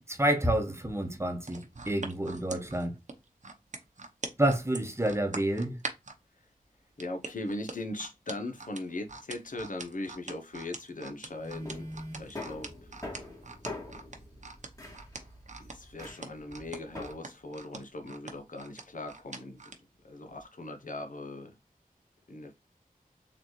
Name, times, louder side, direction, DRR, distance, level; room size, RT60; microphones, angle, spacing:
voice 1, 0.1-2.9 4.4-5.8, right 1 dB, 15° right, 1.0 m, -29 dB
sound 1, 1.4-6.2 7.0-19.8 20.2-20.4, right 3 dB, 55° right, 0.8 m, -42 dB
voice 2, 7.0-11.9 12.1-12.7 15.6-19.6 20.0-21.6 22.3-22.5, left 2 dB, 60° left, 0.8 m, -39 dB
sound 2, 11.2-17.1, left 1 dB, 20° left, 1.9 m, -43 dB
3.9 x 3.3 x 3.0 m
cardioid pair, 40°, 15 cm